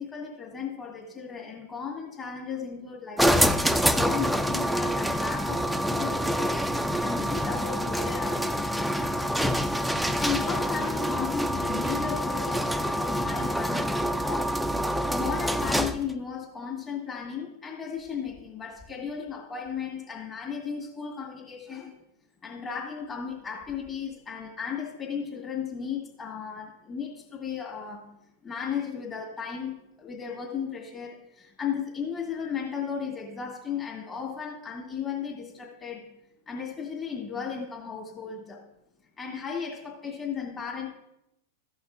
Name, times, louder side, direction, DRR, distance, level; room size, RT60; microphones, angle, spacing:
voice 1, 0.0-3.6 3.9-8.9 10.2-14.6 15.1-21.9 22.4-28.1 28.4-36.1 36.5-38.6 39.2-40.9, left 6 dB, 30° left, 2.2 m, -35 dB
sound 1, 3.2-16.1, equal, ahead, 0.4 m, -26 dB
14.5 x 5.5 x 3.7 m
hypercardioid pair, 110°, 0 cm